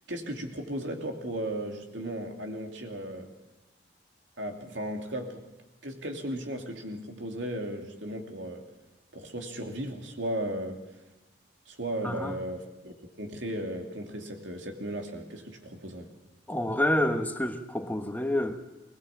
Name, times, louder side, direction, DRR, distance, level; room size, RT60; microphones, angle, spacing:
voice 1, 0.1-3.3 4.4-5.4 5.8-8.7 9.1-10.8 11.7-16.1, right 1 dB, 80° right, 3 dB, 2.8 m, -36 dB
voice 2, 12.0-12.3 16.5-18.6, left 1 dB, 10° left, 5 dB, 1.3 m, -28 dB
21.0 x 20.5 x 7.3 m, 1.1 s
head